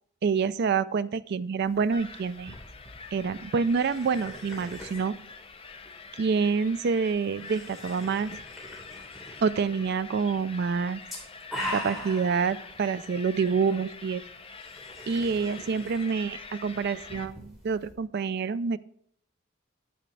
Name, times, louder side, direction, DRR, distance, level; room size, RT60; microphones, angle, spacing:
voice 1, 0.2-2.6 3.1-5.1 6.2-8.4 9.4-11.0 11.7-14.2 15.1-18.8, right 5 dB, 55° right, 15 dB, 0.4 m, -27 dB
sound 1, 1.6-17.9, equal, ahead, 3.2 m, -44 dB
sound 2, 1.9-17.3, left 5 dB, 30° left, 0.7 m, -45 dB
10.0 x 6.5 x 3.3 m, 0.66 s
head